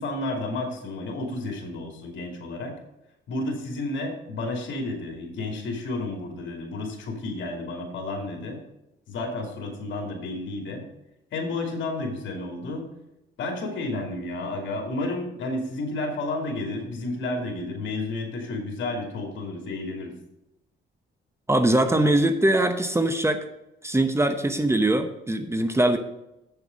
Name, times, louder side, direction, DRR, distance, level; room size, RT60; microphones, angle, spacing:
voice 1, 0.0-2.7 3.3-8.6 9.1-10.8 11.3-12.9 13.4-20.1, left 2 dB, 70° left, 2 dB, 2.7 m, -31 dB
voice 2, 21.5-23.4 23.8-26.0, right 1 dB, 15° right, 8 dB, 0.9 m, -22 dB
8.1 x 7.0 x 5.2 m, 0.89 s
cardioid pair, 90°, 20 cm